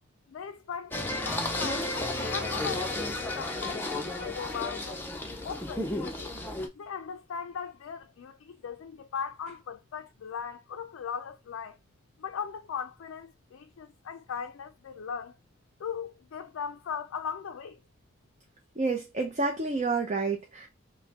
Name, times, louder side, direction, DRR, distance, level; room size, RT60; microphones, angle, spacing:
voice 1, 0.3-5.0 5.4-6.3 6.7-11.8 12.2-15.3 15.8-17.8, left 7 dB, 75° left, 0.3 m, -38 dB
Singing, 0.9-6.7, left 2 dB, 10° left, 0.5 m, -33 dB
voice 2, 18.8-20.7, right 3 dB, 35° right, 0.6 m, -29 dB
5.5 x 2.1 x 2.7 m
head